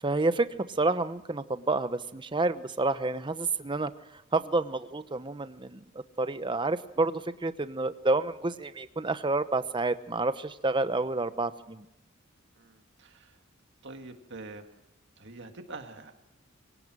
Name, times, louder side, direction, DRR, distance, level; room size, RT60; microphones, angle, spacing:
voice 1, 0.0-3.9 4.3-5.8 6.2-11.8, right 2 dB, 25° right, 12 dB, 0.9 m, -29 dB
voice 2, 12.6-13.4 13.8-14.9 15.2-16.1, right 3 dB, 60° right, 6 dB, 1.9 m, -45 dB
24.5 x 17.5 x 6.2 m, 0.90 s
head